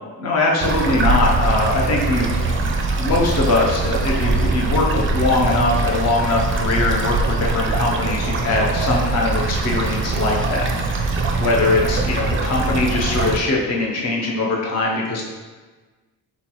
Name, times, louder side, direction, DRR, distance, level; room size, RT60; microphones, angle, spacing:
voice 1, 0.2-2.5 2.9-15.2, left 2 dB, 45° left, -2 dB, 0.7 m, -21 dB
sound 1, 0.6-13.4, right 3 dB, 35° right, 0.4 m, -22 dB
4.3 x 3.9 x 3.0 m, 1.3 s
wide cardioid pair, 175°, 38 cm